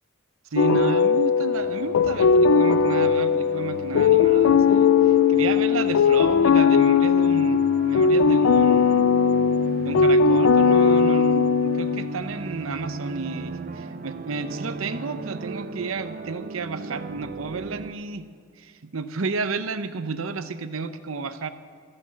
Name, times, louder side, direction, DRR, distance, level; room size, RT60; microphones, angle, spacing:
voice 1, 0.5-9.1 9.8-18.3 18.6-21.5, right 4 dB, 85° right, 11 dB, 0.8 m, -31 dB
sound 1, 0.6-12.3, left 6 dB, 85° left, 0.4 m, -19 dB
sound 2, 1.5-17.9, right 2 dB, 45° right, 0.5 m, -36 dB
14.0 x 8.7 x 7.5 m, 2.2 s
head